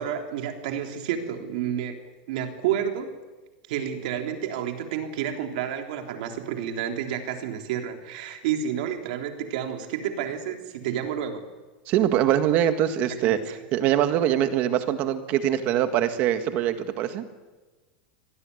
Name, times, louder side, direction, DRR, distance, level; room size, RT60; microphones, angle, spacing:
voice 1, 0.0-3.1 3.7-11.5 13.2-13.3, right 9 dB, 55° right, 4 dB, 3.5 m, -30 dB
voice 2, 11.9-17.2, right 11 dB, 30° right, 9 dB, 1.7 m, -23 dB
25.0 x 18.0 x 9.7 m, 1.2 s
supercardioid pair, 180°, 5 cm